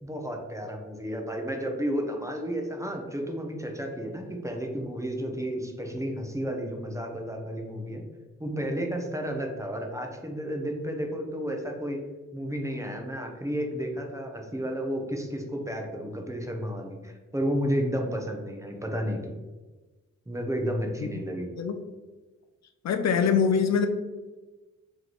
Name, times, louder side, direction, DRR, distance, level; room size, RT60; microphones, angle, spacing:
voice 1, 0.0-8.0 8.4-12.0 12.3-19.3 20.3-21.5, equal, 10° right, 2 dB, 0.7 m, -32 dB
voice 2, 22.8-23.9, left 6 dB, 65° left, 7 dB, 0.5 m, -23 dB
3.2 x 3.0 x 4.0 m, 1.2 s
cardioid pair, 70°, 30 cm